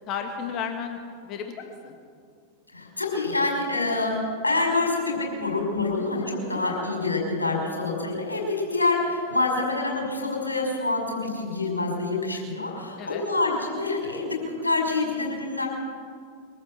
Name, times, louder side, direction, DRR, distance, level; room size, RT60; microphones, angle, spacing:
voice 1, 0.1-1.9 6.5-6.7 13.0-13.3, left 7 dB, 35° left, 4 dB, 2.3 m, -33 dB
voice 2, 2.7-15.7, left 3 dB, 80° left, 0 dB, 5.8 m, -26 dB
24.0 x 14.0 x 7.7 m, 2.1 s
figure-of-eight pair, 90°, 0 cm